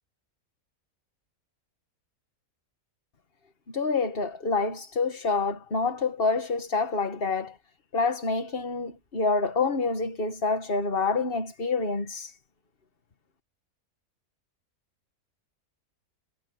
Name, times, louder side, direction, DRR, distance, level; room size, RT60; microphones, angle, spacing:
voice 1, 3.7-7.6 7.9-12.4, left 4 dB, 40° left, 1.7 m, -27 dB
omnidirectional pair, 1.5 m